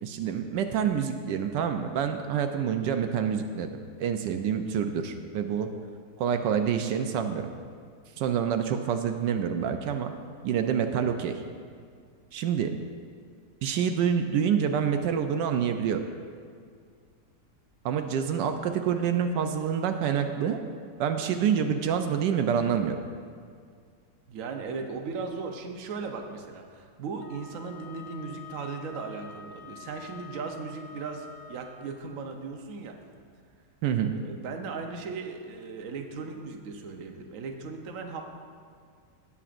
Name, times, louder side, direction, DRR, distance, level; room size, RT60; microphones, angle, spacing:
voice 1, 0.0-3.7 4.0-5.7 6.2-7.5 8.2-10.1 10.4-11.3 12.3-12.7 13.6-16.0 17.8-20.6 21.0-23.0 33.8-34.1, right 8 dB, 80° right, 6 dB, 1.2 m, -27 dB
voice 2, 24.3-33.0 34.1-38.2, right 4 dB, 55° right, 3 dB, 1.0 m, -37 dB
Wind instrument woodwind instrument, 27.2-31.9, left 6 dB, 50° left, 1.0 m, -47 dB
18.0 x 6.9 x 2.5 m, 2.1 s
omnidirectional pair, 1.9 m